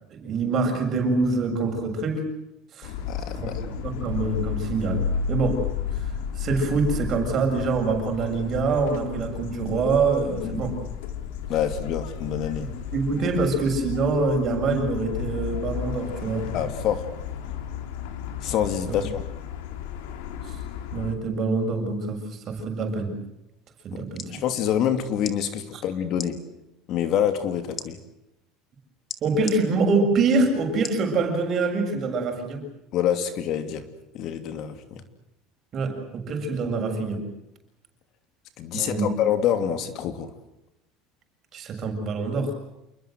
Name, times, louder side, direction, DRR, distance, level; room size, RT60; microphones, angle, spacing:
voice 1, 0.1-2.2 2.7-2.9 3.3-5.7 6.4-10.8 12.9-16.5 18.9-19.0 20.5-20.6 20.9-23.1 23.8-24.3 25.7-25.8 29.2-32.7 35.7-37.2 38.7-39.1 41.5-42.5, right 3 dB, 35° right, 4 dB, 7.2 m, -25 dB
sound 1, 2.8-21.1, left 7 dB, 85° left, 3.4 m, -33 dB
voice 2, 3.1-3.5 10.4-10.6 11.5-12.7 16.5-17.0 18.4-19.2 23.9-26.4 26.9-28.0 32.9-33.8 34.1-35.0 38.6-40.3, left 9 dB, 50° left, 9 dB, 2.7 m, -26 dB
sound 2, 23.9-24.3 25.2-25.4 26.1-26.3 27.8-27.9 29.1-29.6 30.8-31.1 31.6-31.7, left 6 dB, 30° left, 2.6 m, -35 dB
28.5 x 21.5 x 7.9 m, 0.89 s
cardioid pair, 145°, 0 cm